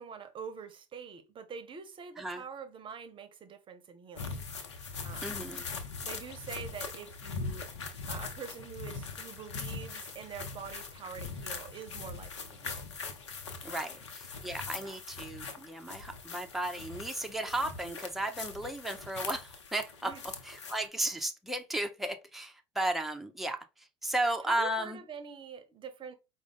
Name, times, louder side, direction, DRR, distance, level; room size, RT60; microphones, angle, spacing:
voice 1, 0.0-4.4 5.0-5.4 6.0-7.7 8.1-12.9 13.7-14.0 14.7-15.0 20.0-20.2 24.4-26.1, right 6 dB, 35° right, 0.8 m, -45 dB
sound 1, 4.2-20.9, left 4 dB, 80° left, 0.7 m, -41 dB
voice 2, 5.2-5.7 13.6-20.1 20.4-23.6 24.0-25.0, right 1 dB, ahead, 0.7 m, -34 dB
4.8 x 2.1 x 3.6 m
hypercardioid pair, 70°, 15 cm